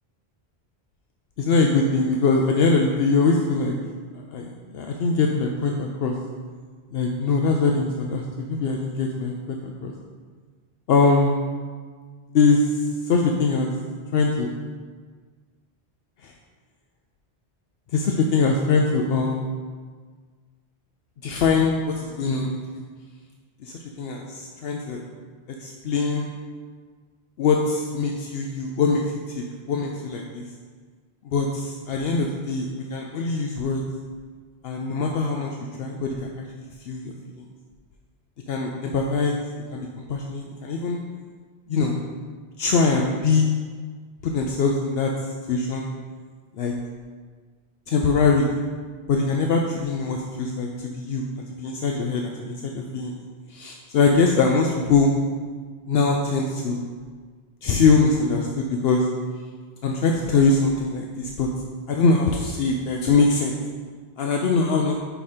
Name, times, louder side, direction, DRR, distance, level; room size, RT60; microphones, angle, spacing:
voice 1, 1.4-3.7 4.3-6.1 6.9-9.9 10.9-11.3 12.3-12.6 13.0-13.7 14.1-14.5 16.2-16.3 17.9-19.5 21.2-22.8 23.6-25.0 25.6-26.3 27.4-29.0 29.7-30.4 31.3-33.8 34.6-35.5 35.8-36.2 36.9-37.4 38.5-39.4 39.7-41.0 41.7-42.0 42.6-43.5 44.2-45.1 45.5-45.9 46.6-46.7 47.9-48.6 49.1-51.2 51.6-53.2 53.5-55.1 55.9-56.8 57.6-59.0 59.8-61.5 61.9-63.5 64.2-65.0, left 4 dB, 75° left, 1 dB, 0.8 m, -22 dB
5.6 x 4.8 x 4.3 m, 1.5 s
omnidirectional pair, 1.1 m